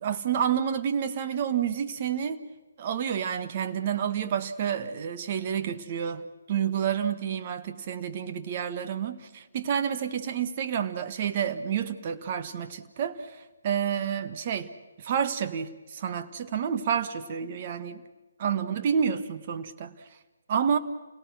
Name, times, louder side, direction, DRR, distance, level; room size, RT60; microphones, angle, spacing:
voice 1, 0.0-2.4 2.8-13.4 13.6-14.7 15.0-18.0 18.4-19.9 20.5-20.8, right 8 dB, 40° right, 1.4 m, -29 dB
29.0 x 18.0 x 6.3 m
figure-of-eight pair, 145°, 0 cm